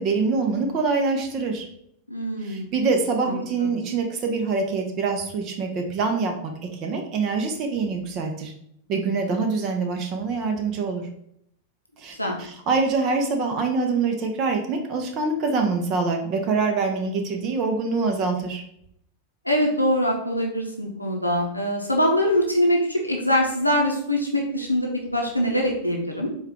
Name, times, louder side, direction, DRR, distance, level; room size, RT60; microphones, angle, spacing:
voice 1, 0.0-1.7 2.4-6.5 6.8-8.5 8.9-11.1 12.0-18.6, right 4 dB, 35° right, 4 dB, 0.6 m, -25 dB
voice 2, 2.1-2.7 3.2-3.7 12.2-12.3 19.5-26.3, equal, 85° left, 0 dB, 0.6 m, -23 dB
4.5 x 2.3 x 3.4 m, 0.71 s
figure-of-eight pair, 90°, 0 cm